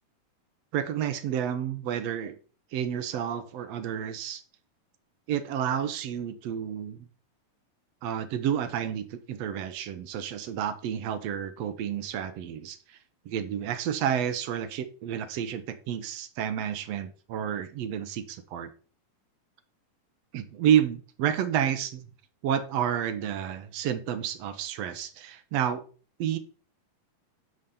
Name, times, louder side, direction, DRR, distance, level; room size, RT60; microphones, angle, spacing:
voice 1, 0.7-2.4 2.7-4.4 5.3-7.1 8.0-13.0 13.3-18.7 20.3-22.1 22.4-25.8 26.2-26.4, right 9 dB, 70° right, 10 dB, 1.6 m, -30 dB
11.0 x 4.1 x 6.9 m, 0.40 s
omnidirectional pair, 3.8 m